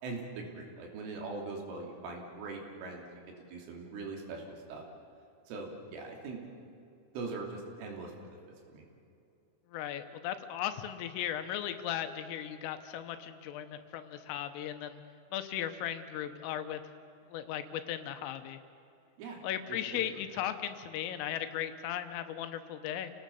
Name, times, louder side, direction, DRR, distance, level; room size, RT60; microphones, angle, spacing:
voice 1, 0.0-3.1 3.5-4.8 5.5-6.4 7.2-8.3 8.7-8.8 19.2-19.4 19.7-20.2, right 3 dB, 75° right, 1 dB, 5.4 m, -41 dB
voice 2, 9.7-15.0 15.3-16.8 17.3-18.6 19.4-23.1, left 11 dB, 85° left, 8 dB, 3.6 m, -37 dB
29.0 x 18.0 x 7.0 m, 2.7 s
omnidirectional pair, 5.8 m